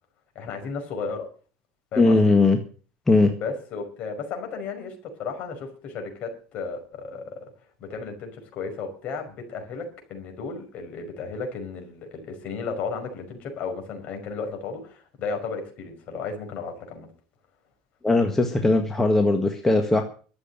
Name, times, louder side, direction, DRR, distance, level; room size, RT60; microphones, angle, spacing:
voice 1, 0.4-1.3 1.9-2.4 3.4-7.5 7.8-17.1, left 4 dB, 50° left, 4 dB, 5.5 m, -34 dB
voice 2, 2.0-2.6 3.1-3.3 18.0-20.0, left 2 dB, 10° left, 4 dB, 1.7 m, -19 dB
13.0 x 7.9 x 9.1 m, 0.40 s
supercardioid pair, 125°, 3 cm